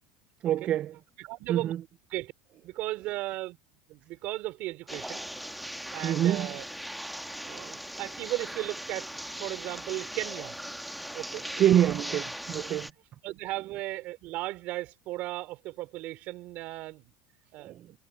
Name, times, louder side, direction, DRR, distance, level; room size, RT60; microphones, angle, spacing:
voice 1, 0.4-0.9 1.5-1.8 6.0-6.5 11.6-12.9 17.6-17.8, right 11 dB, 35° right, 0.4 m, -25 dB
voice 2, 1.2-1.7 2.1-2.3 2.6-3.6 3.9-5.2 5.9-6.6 7.4-10.5 11.1-11.5 13.2-17.1 17.5-17.8, right 18 dB, 50° right, 5.0 m, -36 dB
sound 1, 4.9-12.9, equal, ahead, 1.3 m, -39 dB
supercardioid pair, 140°, 3 cm